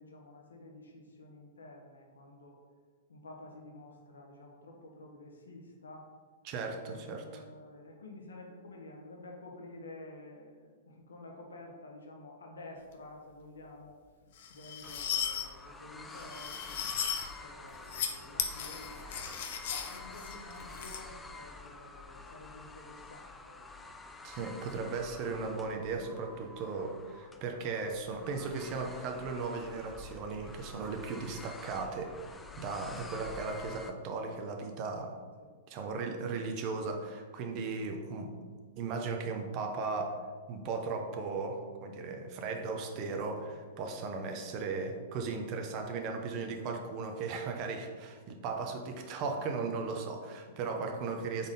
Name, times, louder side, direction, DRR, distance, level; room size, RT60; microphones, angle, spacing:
voice 1, 0.0-2.6 3.1-6.1 6.7-14.0 14.5-16.9 17.4-24.0 35.4-35.5 50.5-50.7, left 2 dB, 90° left, 0 dB, 0.9 m, -51 dB
voice 2, 6.4-7.4 24.2-35.2 35.7-38.4 38.8-40.2 40.5-51.5, right 4 dB, 40° right, 4 dB, 0.6 m, -37 dB
sound 1, 14.4-15.4 16.2-17.3 17.7-18.1 18.4-21.0, left 8 dB, 60° left, 0.6 m, -36 dB
sound 2, 14.8-33.9, left 3 dB, 10° left, 0.4 m, -48 dB
4.0 x 3.6 x 3.7 m, 1.6 s
hypercardioid pair, 125°, 0 cm